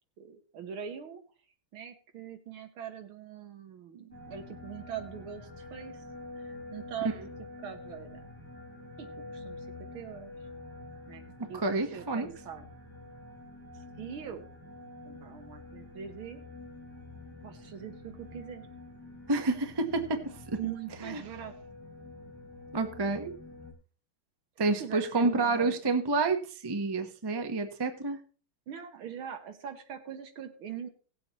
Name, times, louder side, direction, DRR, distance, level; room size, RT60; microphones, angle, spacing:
voice 1, 0.2-1.2 1.7-6.0 6.4-7.1 7.6-8.3 9.0-9.7 9.9-10.3 11.1-12.7 14.0-14.5 15.0-16.4 17.4-18.7 20.6-21.6 24.6-25.8 28.7-30.9, right 8 dB, 75° right, 7 dB, 2.0 m, -42 dB
sound 1, 4.1-23.7, left 2 dB, 10° left, 3.3 m, -47 dB
voice 2, 11.4-12.3 19.3-20.6 21.0-21.2 22.7-23.3 24.6-28.2, right 3 dB, 35° right, 6 dB, 0.4 m, -29 dB
18.0 x 7.8 x 3.0 m, 0.38 s
omnidirectional pair, 2.3 m